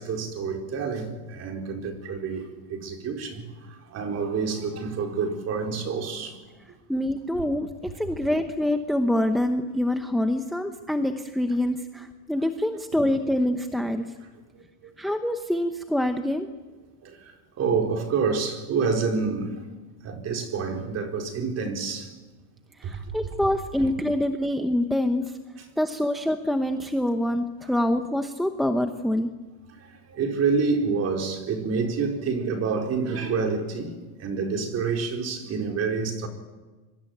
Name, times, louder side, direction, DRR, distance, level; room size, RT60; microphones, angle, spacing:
voice 1, 0.0-3.5 3.9-6.4 12.9-13.0 17.0-17.1 17.6-19.5 20.0-22.1 22.8-23.2 23.8-23.9 30.1-36.3, right 5 dB, 30° right, 4.3 m, -28 dB
voice 2, 6.9-14.1 15.0-16.5 22.8-25.3 25.8-29.3, left 1 dB, ahead, 0.9 m, -25 dB
26.0 x 23.5 x 9.2 m
supercardioid pair, 150°, 46 cm